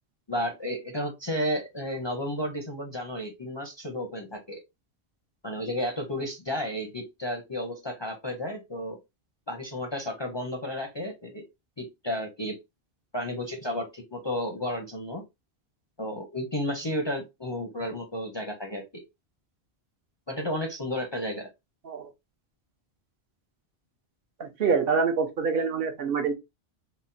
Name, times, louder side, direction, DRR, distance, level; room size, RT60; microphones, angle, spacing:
voice 1, 0.3-4.6 5.4-9.0 9.5-11.4 11.8-12.6 13.1-15.2 16.0-19.0 20.3-21.5, equal, 35° left, 0.5 m, -32 dB
voice 2, 24.4-26.3, right 5 dB, 65° right, 0.9 m, -26 dB
3.9 x 2.1 x 2.5 m
omnidirectional pair, 1.1 m